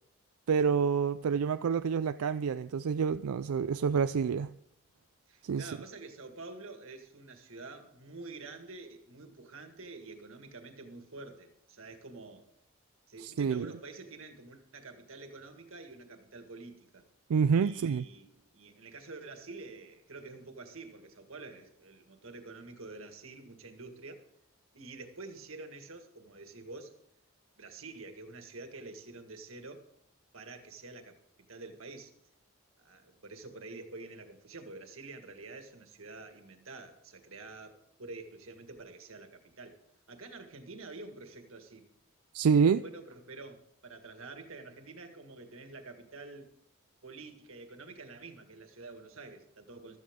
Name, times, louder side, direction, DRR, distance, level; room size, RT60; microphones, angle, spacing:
voice 1, 0.5-4.5 5.4-5.7 13.2-13.7 17.3-18.0 42.3-42.8, right 6 dB, 85° right, 0.4 m, -27 dB
voice 2, 5.3-12.5 13.1-17.0 17.6-24.2 24.7-27.0 27.6-29.9 30.3-32.1 32.8-39.8 40.1-41.9 42.6-46.5 47.0-50.0, right 3 dB, 65° right, 1.8 m, -48 dB
15.0 x 13.0 x 3.7 m
head